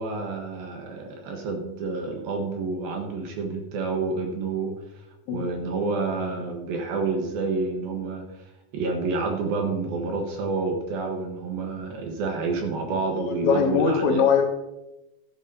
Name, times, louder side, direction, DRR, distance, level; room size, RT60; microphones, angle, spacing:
voice 1, 0.0-4.8 5.3-8.4 8.7-14.2, right 3 dB, 70° right, 2 dB, 2.6 m, -29 dB
voice 2, 13.1-14.5, left 6 dB, 85° left, 3 dB, 3.6 m, -22 dB
12.5 x 10.5 x 2.7 m, 0.95 s
omnidirectional pair, 5.1 m